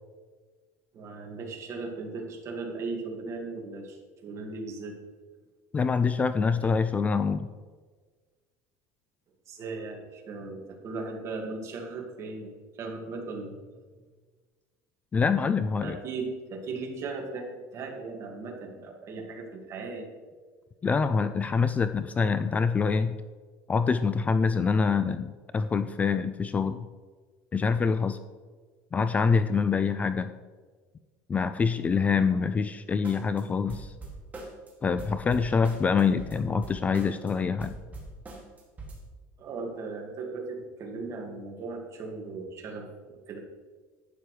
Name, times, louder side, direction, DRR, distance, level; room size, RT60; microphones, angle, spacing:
voice 1, 0.9-5.0 9.5-14.0 15.8-20.1 39.4-43.4, right 3 dB, 40° right, 2 dB, 1.9 m, -37 dB
voice 2, 5.7-7.5 15.1-16.0 20.8-23.2 23.7-26.9 27.5-28.2 28.9-30.3 31.3-33.9 34.8-37.7, left 5 dB, 20° left, 11 dB, 0.3 m, -25 dB
sound 1, 33.0-33.4 33.7-34.7 35.0-37.3 37.6-39.0, right 2 dB, 20° right, 2.3 m, -42 dB
11.5 x 8.6 x 3.2 m, 1.4 s
cardioid pair, 140°, 8 cm